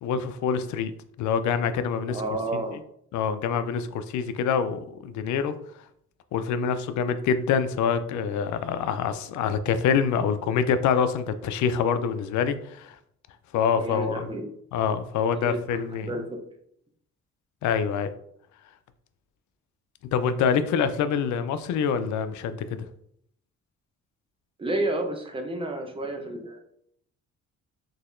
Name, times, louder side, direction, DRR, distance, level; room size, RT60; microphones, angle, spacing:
voice 1, 0.0-0.9 1.2-2.2 2.5-2.6 3.1-5.6 6.3-12.9 13.5-14.3 14.7-16.1 17.6-18.1 20.1-22.9, left 7 dB, 70° left, 11 dB, 0.4 m, -25 dB
voice 2, 2.1-2.8 13.7-14.4 15.4-15.6 16.0-16.4 24.6-26.6, right 2 dB, 15° right, 3 dB, 0.7 m, -30 dB
3.9 x 2.7 x 2.6 m, 0.70 s
cardioid pair, 90°, 30 cm